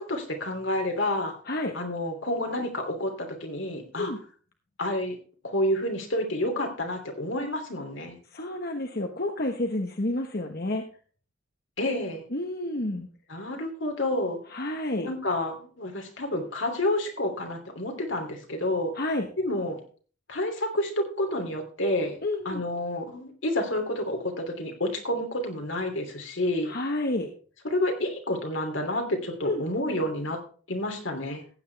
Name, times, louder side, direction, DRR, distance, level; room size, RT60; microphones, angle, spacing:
voice 1, 0.0-1.3 1.7-4.1 4.8-5.2 5.4-8.2 11.8-12.2 13.3-14.4 15.0-18.9 19.4-19.8 20.3-26.7 27.6-30.4 30.7-31.4, left 1 dB, 75° left, 3 dB, 3.0 m, -29 dB
voice 2, 8.3-10.8 12.3-13.1 14.5-15.1 18.9-19.3 22.2-22.6 26.6-27.3 29.4-29.6, left 1 dB, 50° left, 4 dB, 1.2 m, -29 dB
15.0 x 9.2 x 3.4 m, 0.40 s
head